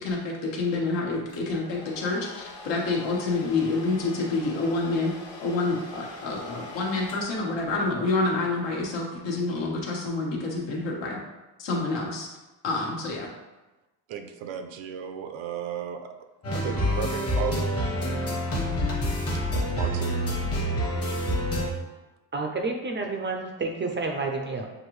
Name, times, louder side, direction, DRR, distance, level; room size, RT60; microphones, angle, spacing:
voice 1, 0.0-5.1 5.4-11.2 11.6-12.3 12.6-13.3, left 3 dB, 70° left, -1 dB, 1.3 m, -28 dB
Domestic sounds home sounds, 1.3-8.0, left 4 dB, 50° left, 1.3 m, -44 dB
voice 2, 14.1-16.1 16.5-18.8 19.3-20.3, right 8 dB, 80° right, 7 dB, 0.6 m, -36 dB
sound 1, 16.4-21.7, equal, 30° left, 1.2 m, -27 dB
voice 3, 22.3-24.7, right 3 dB, 25° right, 2 dB, 0.4 m, -30 dB
6.3 x 2.6 x 3.1 m, 1.1 s
cardioid pair, 125°, 46 cm